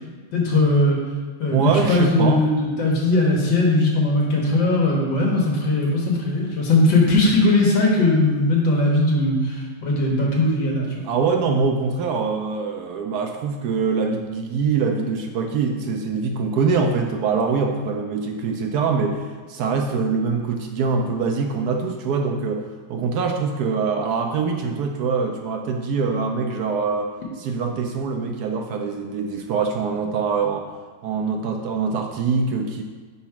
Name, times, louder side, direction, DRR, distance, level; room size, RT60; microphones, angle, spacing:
voice 1, 0.3-1.0 1.4-10.9, left 2 dB, 85° left, -2 dB, 1.9 m, -19 dB
voice 2, 1.5-2.4 11.0-19.2 19.5-27.1 27.4-30.7 31.0-32.8, right 5 dB, 70° right, 3 dB, 1.0 m, -23 dB
4.8 x 4.1 x 5.7 m, 1.5 s
omnidirectional pair, 2.0 m